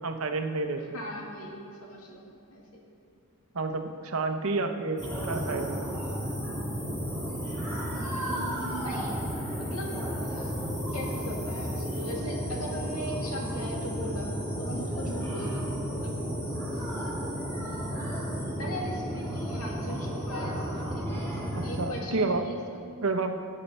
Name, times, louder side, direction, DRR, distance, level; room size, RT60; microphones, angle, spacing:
voice 1, 0.0-1.0 3.5-5.8 21.5-22.4 23.0-23.4, right 3 dB, 70° right, 6 dB, 0.9 m, -30 dB
voice 2, 0.8-2.2 2.5-2.8 7.9-9.2 9.6-10.0 10.2-16.1 18.6-22.6, equal, 80° left, -1 dB, 2.2 m, -39 dB
sound 1, 5.0-21.9, equal, 15° left, 2.7 m, -33 dB
16.0 x 8.6 x 4.4 m, 2.4 s
head